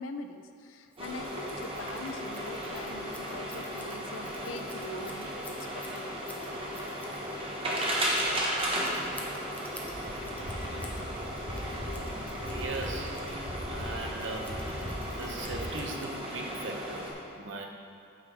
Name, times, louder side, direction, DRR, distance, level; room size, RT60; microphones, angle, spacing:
voice 1, 0.0-6.6, left 3 dB, 75° left, 7 dB, 0.6 m, -43 dB
Scissors, 0.9-16.5, left 2 dB, 5° left, 0.6 m, -52 dB
sound 1, 1.0-17.1, equal, 25° right, 1.2 m, -35 dB
sound 2, 9.8-15.6, equal, 60° left, 1.9 m, -40 dB
voice 2, 12.2-13.2 13.7-14.6 15.1-17.7, right 3 dB, 65° right, 2 dB, 0.9 m, -39 dB
8.7 x 6.3 x 4.6 m, 2.5 s
head